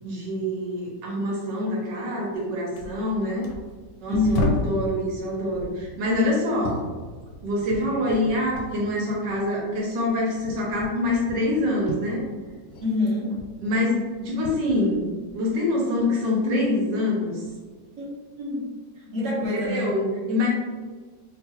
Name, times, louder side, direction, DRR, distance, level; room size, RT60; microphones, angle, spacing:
voice 1, 0.0-3.5 4.0-6.8 7.4-12.2 13.6-15.1 15.3-17.5 19.5-20.5, left 1 dB, 80° right, -3 dB, 1.4 m, -25 dB
sound 1, 2.3-2.5 2.8-4.8 5.4-8.8 9.1-12.9 13.2-15.5 15.9-16.7 17.4-17.6, left 2 dB, 70° left, 0.9 m, -34 dB
voice 2, 4.1-4.5 12.8-13.3 18.0-18.1 18.4-18.7 19.0-20.0, left 2 dB, 50° right, -5 dB, 1.1 m, -26 dB
3.6 x 2.4 x 2.8 m, 1.4 s
omnidirectional pair, 1.9 m